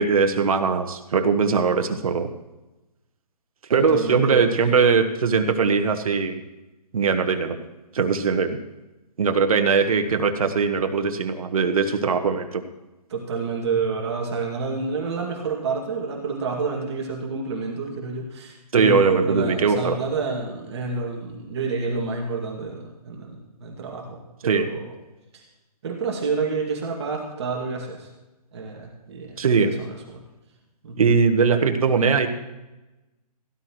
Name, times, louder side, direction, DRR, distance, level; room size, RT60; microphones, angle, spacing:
voice 1, 0.0-2.3 3.7-6.4 6.9-7.6 7.9-8.6 9.2-12.6 18.7-20.0 24.4-24.7 29.4-29.7 31.0-32.3, right 5 dB, 60° right, 8 dB, 1.3 m, -20 dB
voice 2, 3.9-4.6 13.1-24.9 25.3-25.4 25.8-28.1 28.5-29.4 29.6-29.9 30.1-30.2 30.8-31.1, right 4 dB, 45° right, 0 dB, 2.4 m, -28 dB
17.0 x 11.0 x 3.2 m, 1.0 s
hypercardioid pair, 160°, 20 cm